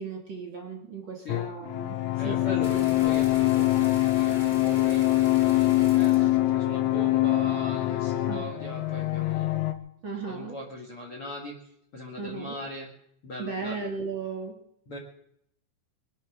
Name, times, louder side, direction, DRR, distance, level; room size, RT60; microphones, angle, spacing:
voice 1, 0.0-2.0 2.2-2.4 2.7-2.8 8.3-8.5 10.0-10.6 12.2-12.6 13.4-14.6, right 4 dB, 35° right, 1 dB, 2.2 m, -36 dB
sound 1, 1.3-9.7, left 16 dB, 85° left, 3.4 m, -24 dB
voice 2, 2.2-9.6 10.2-12.9 13.2-13.8 14.9-15.0, left 1 dB, 45° left, 1 dB, 2.0 m, -40 dB
sound 2, 2.6-7.5, left 1 dB, 60° left, 0.7 m, -45 dB
24.5 x 8.8 x 6.5 m, 0.76 s
omnidirectional pair, 5.4 m